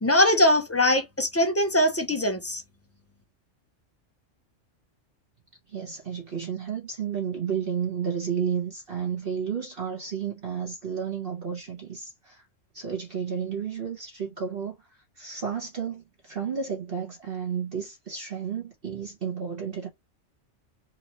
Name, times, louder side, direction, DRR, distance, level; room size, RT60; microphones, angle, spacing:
voice 1, 0.0-2.6, left 1 dB, 20° left, 0.5 m, -22 dB
voice 2, 5.7-12.4 12.7-19.9, right 7 dB, 50° right, 1.3 m, -32 dB
4.5 x 2.7 x 2.9 m
omnidirectional pair, 1.3 m